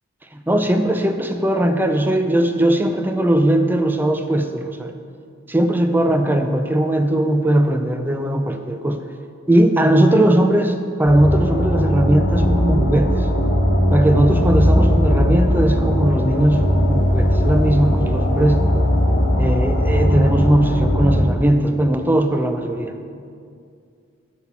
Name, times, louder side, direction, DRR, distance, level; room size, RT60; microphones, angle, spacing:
voice 1, 0.3-4.9 5.5-9.0 9.5-13.3 13.9-18.6 19.4-23.0, right 1 dB, 10° right, 6 dB, 0.4 m, -19 dB
sound 1, 11.0-21.2, equal, 60° left, 1.6 m, -18 dB
11.5 x 4.3 x 5.7 m, 2.3 s
head